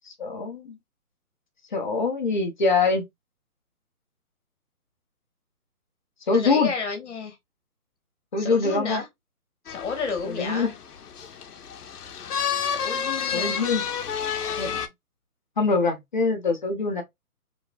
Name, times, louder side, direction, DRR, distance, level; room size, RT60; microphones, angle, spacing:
voice 1, 0.2-0.8 1.7-3.0 6.3-6.7 8.3-9.0 10.2-10.7 13.3-13.8 14.6-14.8 15.6-17.0, left 4 dB, 35° left, 0.6 m, -24 dB
voice 2, 6.3-7.4 8.4-9.1 9.6-10.7 12.6-13.6, left 5 dB, 50° left, 1.3 m, -31 dB
sound 1, 9.7-14.9, left 7 dB, 85° left, 0.6 m, -30 dB
3.0 x 2.9 x 2.2 m
figure-of-eight pair, 145°, 45 cm